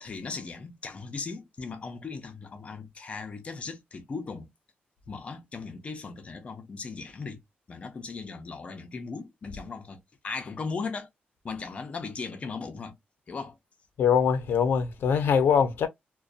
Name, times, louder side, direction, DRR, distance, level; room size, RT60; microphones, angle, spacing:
voice 1, 0.0-4.5 5.1-7.4 7.7-11.1 11.4-13.0 13.3-13.6, left 4 dB, 35° left, 0.6 m, -37 dB
voice 2, 14.0-15.9, left 7 dB, 80° left, 0.5 m, -23 dB
2.5 x 2.2 x 2.4 m
wide cardioid pair, 165°, 4 cm